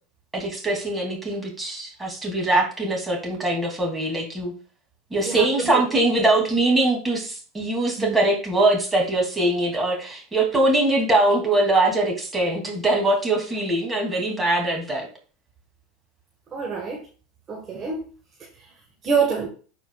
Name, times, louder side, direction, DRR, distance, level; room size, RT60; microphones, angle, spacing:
voice 1, 0.3-4.5 5.1-15.1, right 2 dB, 15° right, -1 dB, 2.9 m, -22 dB
voice 2, 5.2-5.9 8.0-8.2 16.5-17.0 17.5-18.1 18.6-18.7 19.0-19.5, right 5 dB, 35° right, -1 dB, 1.5 m, -26 dB
12.5 x 4.6 x 2.4 m, 0.39 s
hypercardioid pair, 95°, 0 cm